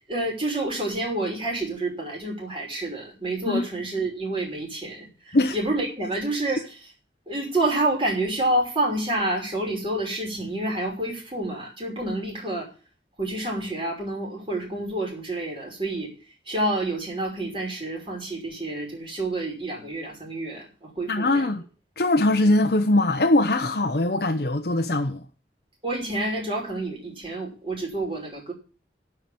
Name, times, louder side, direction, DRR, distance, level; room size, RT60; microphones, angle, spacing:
voice 1, 0.1-6.8 7.3-12.7 13.2-16.1 16.5-21.5 25.8-28.5, right 1 dB, 30° right, 5.7 m, -28 dB
voice 2, 21.1-21.6 22.0-25.2, left 2 dB, 55° left, 0.8 m, -21 dB
11.0 x 6.0 x 8.6 m
head